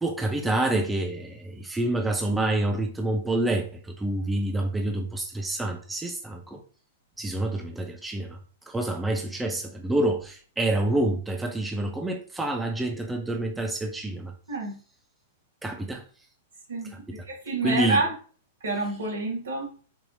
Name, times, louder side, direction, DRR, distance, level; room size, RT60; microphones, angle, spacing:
voice 1, 0.0-6.6 7.2-8.4 8.7-14.3 15.6-16.0 16.9-17.0 17.6-18.0, right 2 dB, 10° right, 0.6 m, -27 dB
voice 2, 14.5-14.8 16.7-18.1 18.6-19.7, right 3 dB, 70° right, 1.6 m, -28 dB
4.6 x 2.8 x 2.8 m
hypercardioid pair, 105°, 0 cm